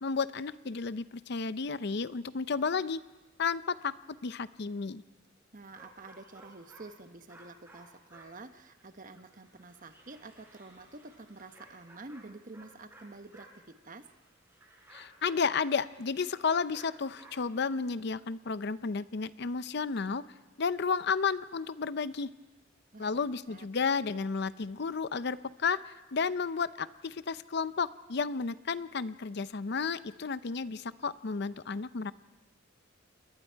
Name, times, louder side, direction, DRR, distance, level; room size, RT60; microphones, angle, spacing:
voice 1, 0.0-3.0 3.4-5.0 14.9-20.2 20.6-22.3 23.0-32.1, left 5 dB, 60° left, 15 dB, 0.6 m, -32 dB
voice 2, 5.5-14.1 22.9-23.2 23.5-23.7, right 3 dB, 45° right, 9 dB, 1.1 m, -49 dB
sound 1, 5.7-7.0 7.3-17.6, right 1 dB, 15° right, 4.5 m, -57 dB
29.0 x 21.5 x 4.6 m, 1.1 s
head